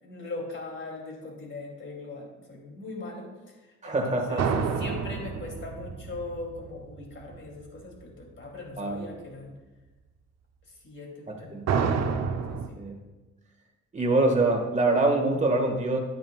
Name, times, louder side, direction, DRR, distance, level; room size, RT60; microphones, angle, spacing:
voice 1, 0.0-3.3 3.8-4.4 4.8-9.5 10.8-12.2 12.5-12.8, left 2 dB, 40° left, -1 dB, 2.9 m, -40 dB
voice 2, 3.8-4.5 8.8-9.1 11.3-11.7 12.8-13.0 13.9-16.0, right 2 dB, 25° right, 1 dB, 1.8 m, -25 dB
sound 1, 4.4-7.4 11.7-12.7, right 6 dB, 60° right, 0.9 m, -29 dB
11.5 x 8.9 x 2.4 m, 1.2 s
cardioid pair, 90°, 30 cm